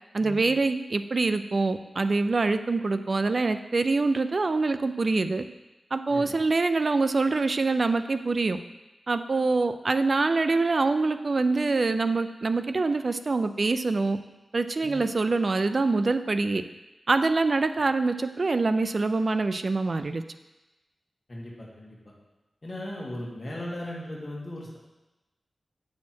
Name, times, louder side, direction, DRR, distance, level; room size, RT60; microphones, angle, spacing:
voice 1, 0.1-5.4 5.9-8.6 9.1-14.2 14.5-16.6 17.1-20.2, right 3 dB, 45° right, 10 dB, 0.4 m, -25 dB
voice 2, 21.3-22.0 22.6-24.8, left 1 dB, 35° left, -4 dB, 2.1 m, -37 dB
8.4 x 6.4 x 4.5 m, 1.1 s
wide cardioid pair, 130°, 0 cm